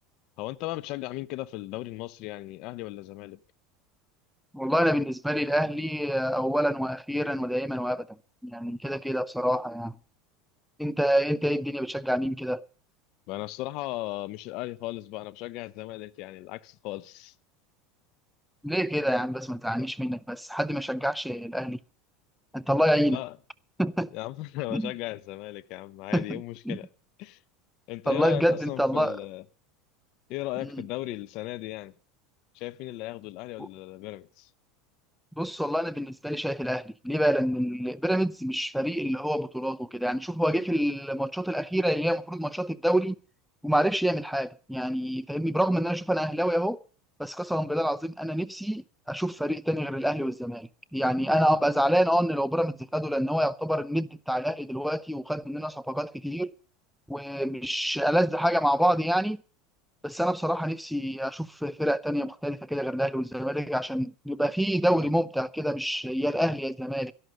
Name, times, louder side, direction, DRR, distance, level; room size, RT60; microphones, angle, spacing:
voice 1, 0.4-3.4 13.3-17.3 23.1-23.4 24.1-26.9 27.2-27.4 27.9-29.4 30.3-31.9 32.5-34.5, left 17 dB, 60° left, 0.8 m, -36 dB
voice 2, 4.5-8.1 8.4-9.9 10.8-12.6 18.6-21.8 22.5-23.2 23.8-24.1 24.7-24.9 26.1-26.8 28.1-29.2 30.6-30.8 33.6-33.7 35.4-43.2 43.6-46.8 47.2-56.5 57.1-59.4 60.0-67.1, equal, ahead, 0.6 m, -27 dB
13.0 x 11.5 x 6.7 m
supercardioid pair, 110°, 0 cm